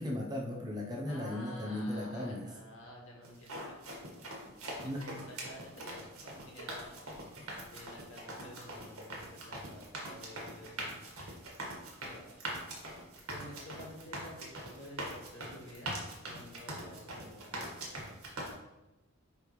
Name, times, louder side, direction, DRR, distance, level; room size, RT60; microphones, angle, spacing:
voice 1, 0.0-2.5 4.4-4.5 4.8-5.1, left 1 dB, 20° right, -1 dB, 0.7 m, -37 dB
voice 2, 1.1-4.3 4.8-11.1 12.0-12.3 13.3-15.9 16.3-18.1, left 1 dB, 65° left, -1 dB, 1.6 m, -51 dB
sound 1, 3.2-18.5, right 1 dB, 80° right, 1.7 m, -43 dB
9.6 x 3.4 x 3.2 m, 1.0 s
head